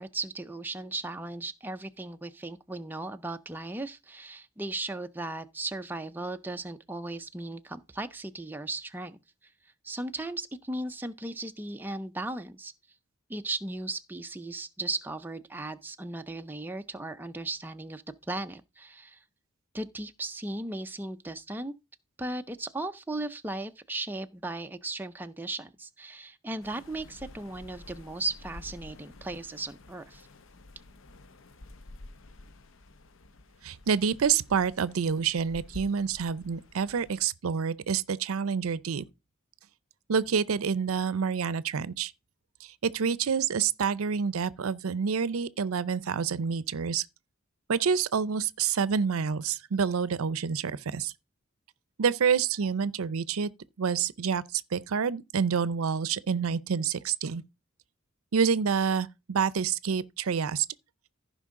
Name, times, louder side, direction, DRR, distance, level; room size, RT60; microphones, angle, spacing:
voice 1, 0.0-9.5 9.8-12.7 13.3-19.2 19.7-21.7 22.2-30.3, right 2 dB, 10° right, 0.4 m, -36 dB
sound 1, 26.6-37.3, left 2 dB, 70° left, 0.7 m, -50 dB
voice 2, 33.6-39.1 40.1-42.1 42.6-47.1 47.7-51.1 52.0-53.5 53.8-57.4 58.3-60.7, right 6 dB, 90° right, 0.5 m, -28 dB
15.0 x 5.2 x 3.6 m
head